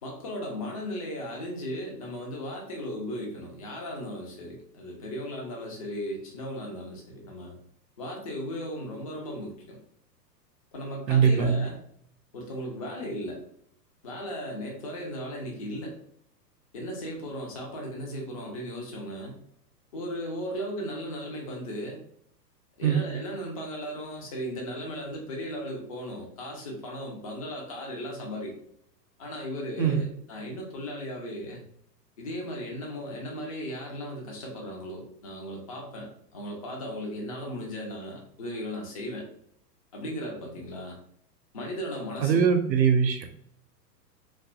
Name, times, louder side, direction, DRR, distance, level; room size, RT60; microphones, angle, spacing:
voice 1, 0.0-7.5 8.0-9.8 10.7-11.8 12.3-13.4 14.0-16.0 16.7-19.4 19.9-22.0 22.8-28.5 29.2-31.6 32.2-39.3 39.9-41.0 41.5-42.5, equal, 25° left, 0 dB, 0.3 m, -36 dB
voice 2, 11.1-11.6 22.8-23.1 29.8-30.0 42.2-43.4, right 7 dB, 85° right, 6 dB, 0.6 m, -22 dB
2.6 x 2.2 x 2.4 m, 0.65 s
figure-of-eight pair, 105°, 50 cm